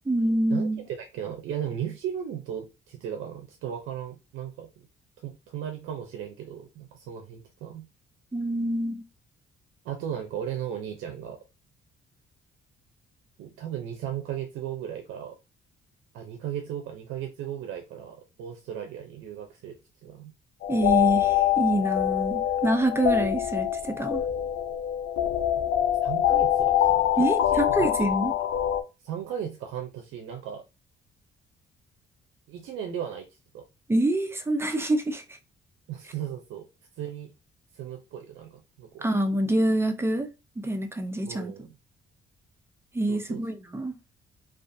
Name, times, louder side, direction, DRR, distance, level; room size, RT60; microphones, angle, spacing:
voice 1, 0.1-0.8 8.3-9.0 20.7-24.2 27.2-28.3 33.9-35.2 39.0-40.3 40.6-41.5 42.9-44.0, right 1 dB, 10° right, 0.4 m, -26 dB
voice 2, 1.0-4.7 5.2-7.9 9.8-11.4 13.4-15.3 16.1-19.8 20.0-20.3 26.0-27.9 29.0-30.6 32.5-33.3 33.5-33.6 35.9-36.7 37.0-37.3 37.7-39.1 41.2-41.7 43.1-43.4, right 9 dB, 85° right, 0.5 m, -36 dB
sound 1, 20.6-28.8, left 11 dB, 75° left, 0.4 m, -24 dB
2.4 x 2.3 x 2.5 m
cardioid pair, 90°, 20 cm